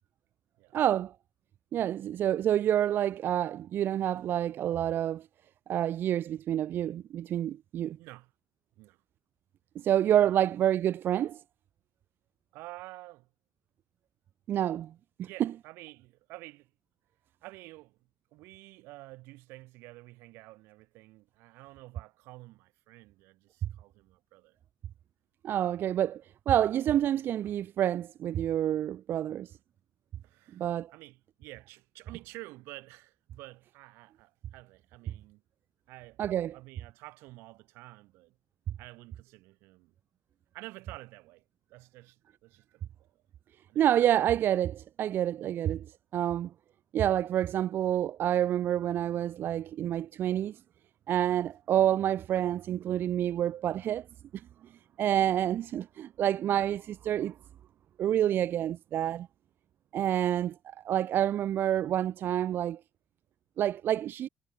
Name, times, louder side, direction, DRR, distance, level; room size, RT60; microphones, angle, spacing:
voice 1, 0.7-1.1 1.7-5.3 5.7-8.0 9.8-11.4 14.5-14.9 15.2-15.5 23.6-23.7 25.4-29.6 30.5-30.9 36.2-36.5 43.8-46.5 46.9-50.6 51.1-54.1 54.3-54.5 55.0-57.4 58.0-59.3 59.9-62.8 63.6-64.3, right 11 dB, 65° right, 0.5 m, -28 dB
voice 2, 8.0-8.3 8.8-9.0 10.2-10.5 12.5-13.3 15.2-16.7 17.4-24.6 30.2-35.4 35.9-36.2 36.5-38.4 38.8-39.9 40.5-41.4 41.7-43.2 43.7-43.8, right 20 dB, 90° right, 3.0 m, -50 dB
cardioid pair, 85°, 4 cm